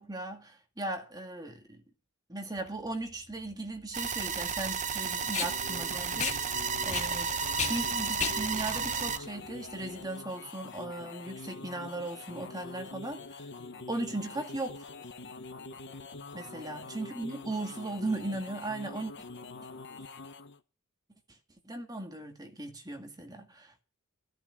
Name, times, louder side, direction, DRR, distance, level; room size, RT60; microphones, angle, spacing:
voice 1, 0.0-1.8 2.3-7.3 7.6-13.5 13.9-14.9 16.3-19.1 21.6-23.8, right 2 dB, 15° right, 2.0 m, -37 dB
Packing tape duct tape, 2.6-10.0, left 5 dB, 30° left, 1.9 m, -37 dB
sound 1, 3.9-9.2, right 5 dB, 35° right, 0.7 m, -32 dB
sound 2, 4.8-20.6, left 3 dB, 55° left, 1.1 m, -45 dB
15.0 x 10.5 x 6.2 m
head